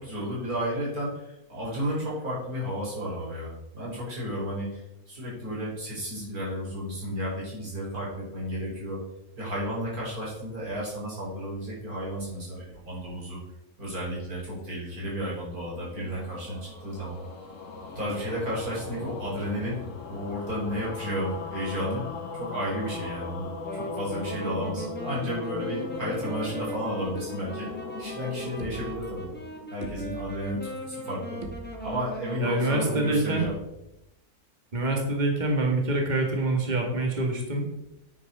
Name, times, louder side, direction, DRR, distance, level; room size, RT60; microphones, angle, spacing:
voice 1, 0.0-9.0 9.3-13.4 13.8-17.2 17.9-22.0 22.3-27.7 28.0-29.3 29.7-31.4 31.8-33.5, equal, 70° right, -5 dB, 4.9 m, -33 dB
sound 1, 15.7-30.1, left 5 dB, 55° left, 1.7 m, -39 dB
Wind instrument woodwind instrument, 23.6-33.1, right 1 dB, 5° left, 1.5 m, -38 dB
sound 2, 28.0-28.1 28.6-29.4 29.8-30.6 31.0-31.1 31.4-32.2 33.4-34.1, right 3 dB, 55° right, 1.5 m, -42 dB
voice 2, 32.4-33.5 34.7-37.6, right 2 dB, 30° right, 1 dB, 2.0 m, -26 dB
9.2 x 6.4 x 5.4 m, 0.89 s
omnidirectional pair, 1.6 m